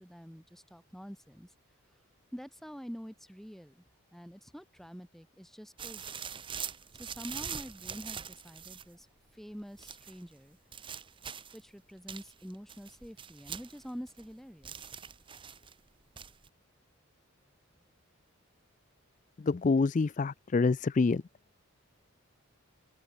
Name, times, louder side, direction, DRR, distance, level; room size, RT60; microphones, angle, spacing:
voice 1, 0.0-1.5 2.3-3.8 4.1-6.2 7.0-9.1 9.3-10.6 11.5-14.9, equal, ahead, 2.8 m, -46 dB
sound 1, 5.8-9.0 9.8-10.2 10.7-11.7 12.1-14.3 14.6-15.7 16.2-16.5, right 7 dB, 25° right, 0.9 m, -43 dB
voice 2, 19.4-21.2, left 4 dB, 35° left, 0.3 m, -27 dB
open air
head